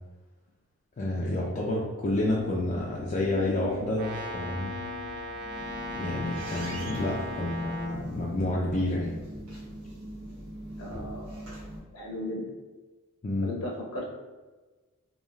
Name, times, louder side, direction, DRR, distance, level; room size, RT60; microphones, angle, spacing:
voice 1, 1.0-4.8 5.9-9.2 13.2-13.5, left 1 dB, 35° left, -3 dB, 0.3 m, -29 dB
sound 1, 2.1-8.6, left 7 dB, 10° right, 0.7 m, -44 dB
Brass instrument, 3.9-8.0, equal, 50° right, 0.5 m, -38 dB
sound 2, 5.3-11.8, right 1 dB, 85° right, 0.9 m, -42 dB
voice 2, 10.8-11.4 11.9-12.5 13.4-14.1, left 1 dB, 80° left, -1 dB, 0.7 m, -36 dB
3.1 x 2.3 x 2.3 m, 1.3 s
head